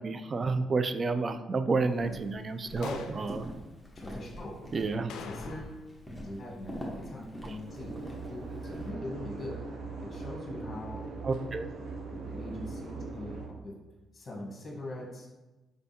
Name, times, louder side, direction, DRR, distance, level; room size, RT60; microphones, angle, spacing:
voice 1, 0.0-2.9 3.2-3.4 4.7-5.1 11.2-11.7, right 4 dB, 40° right, 10 dB, 0.3 m, -30 dB
Walk footsteps, 1.9-8.9, equal, 5° left, 1.1 m, -44 dB
sound 1, 2.8-3.3 5.1-6.0 6.2-6.3 11.3-11.5, left 6 dB, 85° left, 0.3 m, -45 dB
voice 2, 2.8-3.3 3.9-4.5 5.1-5.8 6.2-8.0 8.2-9.6 10.0-11.0 12.1-13.7 14.1-15.3, left 1 dB, 35° left, -2 dB, 1.2 m, -41 dB
sound 2, 7.7-13.5, right 3 dB, 65° right, 0.7 m, -40 dB
5.2 x 3.4 x 2.8 m, 1.1 s
cardioid pair, 90°, 0 cm